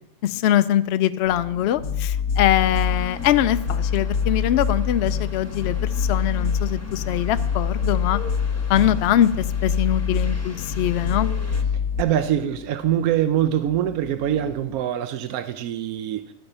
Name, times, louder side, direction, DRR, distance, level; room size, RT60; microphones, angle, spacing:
voice 1, 0.2-8.2 8.7-11.3, left 11 dB, 65° left, 13 dB, 0.7 m, -22 dB
sound 1, 1.2-14.8, left 4 dB, 15° right, 4.5 m, -43 dB
sound 2, 1.8-12.0, left 6 dB, 80° left, 1.1 m, -25 dB
sound 3, 2.5-11.6, left 2 dB, 10° left, 1.1 m, -42 dB
voice 2, 12.0-16.3, right 11 dB, 85° right, 10 dB, 1.1 m, -24 dB
12.0 x 8.8 x 5.5 m, 0.78 s
omnidirectional pair, 1.5 m